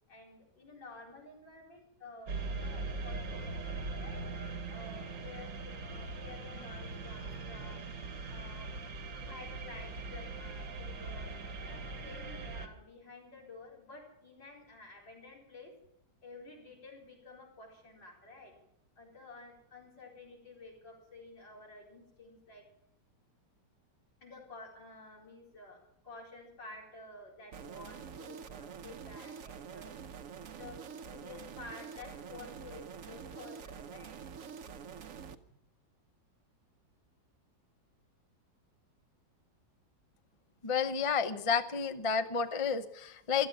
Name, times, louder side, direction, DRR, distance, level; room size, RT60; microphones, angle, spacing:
voice 1, 0.1-4.3 4.7-7.9 8.3-8.7 9.2-11.3 11.7-15.7 16.2-18.5 19.0-22.6 24.2-29.9 30.5-34.2, left 3 dB, 85° left, -2 dB, 5.0 m, -51 dB
sound 1, 2.3-12.7, right 3 dB, 90° right, 2.4 m, -41 dB
sound 2, 27.5-35.3, right 7 dB, 55° right, 1.0 m, -46 dB
voice 2, 40.6-43.5, left 6 dB, 40° left, 10 dB, 0.4 m, -31 dB
15.5 x 13.0 x 6.0 m, 0.76 s
omnidirectional pair, 1.9 m